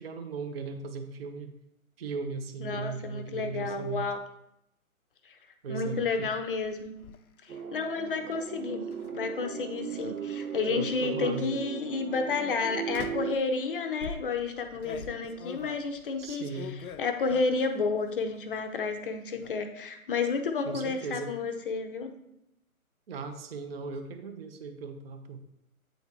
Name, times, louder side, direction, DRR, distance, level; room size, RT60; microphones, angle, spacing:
voice 1, 0.0-1.5 2.0-4.1 5.6-6.3 10.7-11.5 16.2-16.8 20.6-21.3 23.1-25.4, right 4 dB, 45° right, 7 dB, 0.7 m, -38 dB
voice 2, 2.6-4.2 5.3-5.4 5.7-6.9 7.4-8.8 9.1-16.5 17.0-22.1, left 4 dB, 40° left, 6 dB, 0.6 m, -31 dB
sound 1, 6.6-7.2 8.9-9.2 9.9-10.8 11.5-11.8 12.9-13.4 14.0-17.8 18.1-18.7 18.9-19.5, left 6 dB, 80° left, 0.6 m, -44 dB
sound 2, 7.5-13.3, right 8 dB, 85° right, 0.7 m, -37 dB
8.2 x 4.0 x 3.5 m, 0.81 s
hypercardioid pair, 140°, 43 cm